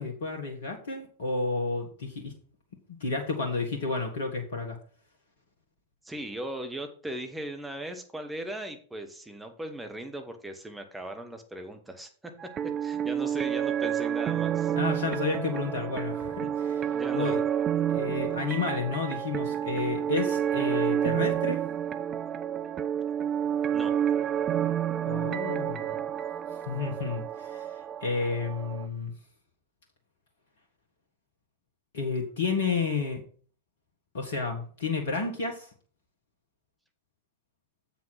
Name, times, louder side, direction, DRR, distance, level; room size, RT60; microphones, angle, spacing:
voice 1, 0.0-2.3 3.0-4.8 14.8-17.4 17.9-21.6 25.1-26.0 26.6-29.1 31.9-33.2 34.1-35.7, left 4 dB, 60° left, 2 dB, 1.5 m, -31 dB
voice 2, 6.0-14.7 16.4-16.5 16.9-17.4 23.7-24.0, right 1 dB, 5° right, 5 dB, 1.4 m, -38 dB
sound 1, 12.4-28.9, right 9 dB, 25° right, 0.5 m, -29 dB
7.6 x 5.7 x 5.9 m, 0.44 s
figure-of-eight pair, 90°, 0 cm